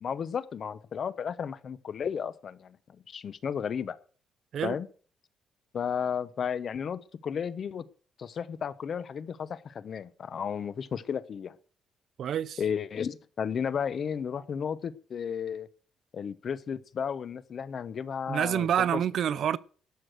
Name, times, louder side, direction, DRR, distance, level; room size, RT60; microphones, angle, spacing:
voice 1, 0.0-2.8 3.1-4.0 4.6-4.9 5.7-7.9 8.2-11.5 12.6-15.7 16.1-19.0, left 7 dB, 45° left, 0.7 m, -33 dB
voice 2, 12.2-12.6 18.3-19.6, right 9 dB, 55° right, 0.5 m, -27 dB
12.5 x 6.5 x 7.8 m
cardioid pair, 160°, 0 cm